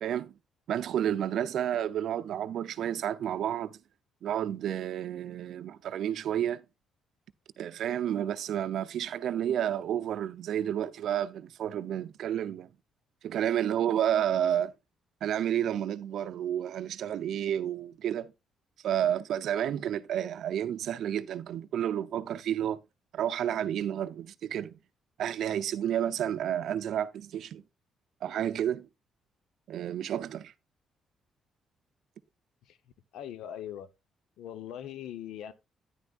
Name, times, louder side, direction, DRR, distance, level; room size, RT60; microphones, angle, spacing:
voice 1, 0.0-0.4 0.7-3.8 4.2-6.6 7.6-12.7 13.2-14.7 15.2-18.3 18.8-22.8 23.1-24.8 25.2-27.6 28.2-28.9 29.7-30.5, right 10 dB, 70° right, 0.6 m, -30 dB
voice 2, 33.1-33.9 34.4-35.5, left 10 dB, 80° left, 0.8 m, -40 dB
10.0 x 9.5 x 2.4 m
cardioid pair, 90°, 0 cm